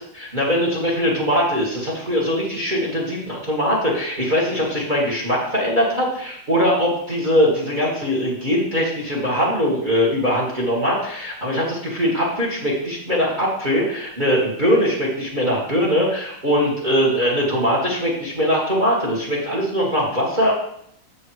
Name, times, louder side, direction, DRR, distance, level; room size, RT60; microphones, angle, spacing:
voice 1, 0.1-20.5, equal, 20° right, -3 dB, 1.8 m, -21 dB
7.2 x 6.4 x 4.8 m, 0.70 s
omnidirectional pair, 2.4 m